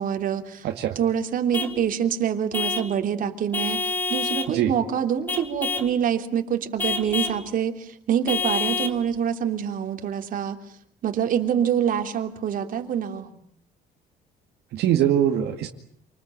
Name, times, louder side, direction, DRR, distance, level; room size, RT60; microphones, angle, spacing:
voice 1, 0.0-0.7 0.9-10.6 11.0-13.4, right 8 dB, 55° right, 5 dB, 3.2 m, -26 dB
voice 2, 0.6-1.0 4.5-4.7 14.7-15.7, right 11 dB, 75° right, 3 dB, 2.2 m, -22 dB
Vehicle horn car horn honking / Truck, 1.5-1.8 2.5-2.9 3.5-4.5 5.3-5.9 6.8-7.4 8.3-9.0, left 4 dB, 10° left, 2.8 m, -27 dB
28.0 x 20.5 x 9.1 m, 0.64 s
cardioid pair, 110°, 17 cm